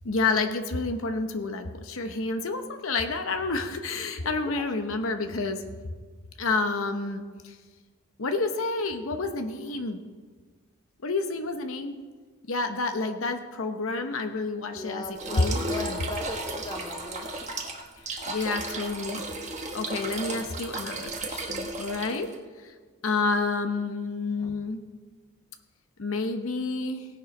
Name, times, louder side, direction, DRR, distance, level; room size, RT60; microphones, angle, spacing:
voice 1, 0.0-5.6 6.4-7.6 8.2-10.0 11.0-12.0 12.5-16.0 18.1-19.2 19.7-22.3 22.6-22.7 23.0-24.8 26.0-27.1, left 3 dB, 70° left, 7 dB, 0.8 m, -29 dB
voice 2, 4.4-4.9 5.2-5.3 14.7-17.5 24.4-24.5, left 2 dB, 20° left, 4 dB, 1.0 m, -38 dB
sound 1, 15.2-22.4, right 2 dB, 35° right, 1.3 m, -35 dB
17.5 x 6.8 x 5.3 m, 1.5 s
head